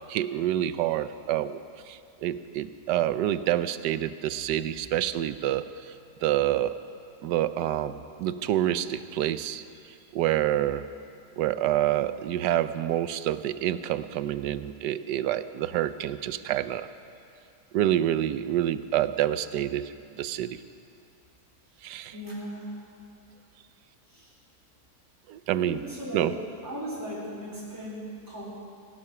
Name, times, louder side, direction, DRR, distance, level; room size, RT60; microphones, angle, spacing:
voice 1, 0.1-1.6 1.9-5.7 6.2-6.8 7.2-9.6 10.1-10.9 11.4-16.9 17.7-20.6 21.8-22.1 25.3-25.8 26.1-26.3, right 12 dB, 90° right, 13 dB, 1.2 m, -27 dB
voice 2, 22.1-22.7 24.1-24.3 25.5-26.3 26.6-28.5, equal, 10° right, -6 dB, 3.8 m, -37 dB
17.0 x 12.0 x 6.0 m, 2.5 s
omnidirectional pair, 1.8 m